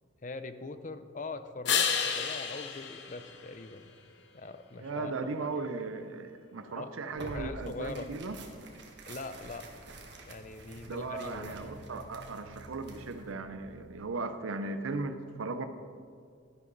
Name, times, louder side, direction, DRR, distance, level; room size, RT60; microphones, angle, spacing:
voice 1, 0.2-1.9 2.1-4.0 4.3-5.4 6.8-8.1 9.1-9.7 10.3-11.6, left 3 dB, 40° left, 10 dB, 0.5 m, -42 dB
sound 1, 1.6-4.2 10.0-13.9, left 7 dB, 60° left, 0.9 m, -36 dB
voice 2, 4.8-8.4 10.9-15.6, right 3 dB, 80° right, 9 dB, 0.6 m, -37 dB
Tearing, 7.1-13.3, right 2 dB, 55° right, 1.4 m, -48 dB
12.5 x 11.0 x 4.0 m, 2.2 s
head